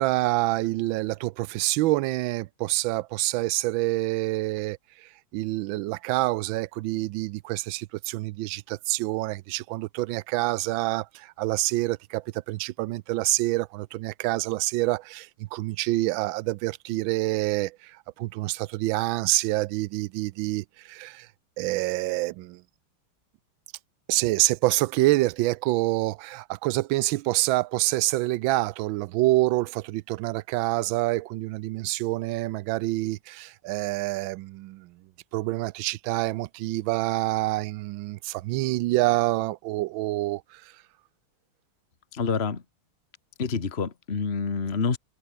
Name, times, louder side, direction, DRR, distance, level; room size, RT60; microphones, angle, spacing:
voice 1, 0.0-4.8 5.3-21.3 21.6-22.6 24.1-34.9 35.3-40.6, right 18 dB, 75° right, 1.3 m, -27 dB
voice 2, 42.1-42.6 43.4-45.0, left 5 dB, 30° left, 1.9 m, -27 dB
omnidirectional pair, 2.3 m